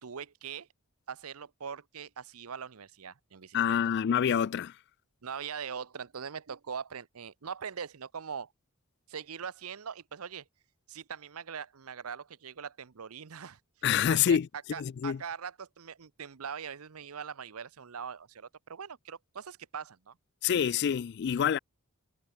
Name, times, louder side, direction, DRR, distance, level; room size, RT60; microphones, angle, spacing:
voice 1, 0.0-0.7 1.1-3.8 5.2-8.5 9.1-10.4 10.9-13.6 14.1-14.4 14.7-20.1, right 6 dB, 85° right, 0.8 m, -41 dB
voice 2, 3.5-4.7 13.8-14.5 14.8-15.2 20.4-21.6, left 8 dB, 50° left, 0.3 m, -26 dB
head